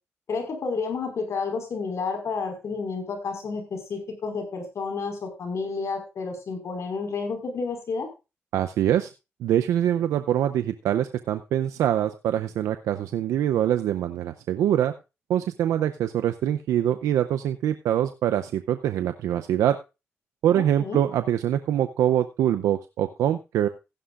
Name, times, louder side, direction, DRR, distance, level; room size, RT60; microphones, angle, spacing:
voice 1, 0.3-8.1 20.6-21.0, left 4 dB, 65° left, 5 dB, 5.0 m, -30 dB
voice 2, 8.5-9.1 9.4-14.9 15.3-19.8 20.4-23.7, right 11 dB, 90° right, 9 dB, 0.6 m, -24 dB
15.5 x 11.0 x 2.5 m, 0.27 s
cardioid pair, 60°, 5 cm